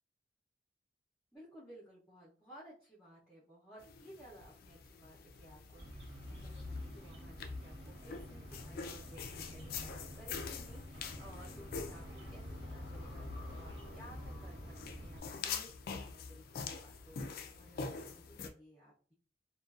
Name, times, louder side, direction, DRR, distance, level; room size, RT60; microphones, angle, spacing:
voice 1, 1.3-12.4 12.7-14.6 14.8-19.1, equal, 5° left, -9 dB, 0.6 m, -57 dB
sound 1, 3.8-18.5, left 5 dB, 55° left, 0.3 m, -45 dB
sound 2, 5.8-15.2, equal, 75° right, 1.0 m, -50 dB
2.4 x 2.3 x 2.4 m, 0.40 s
head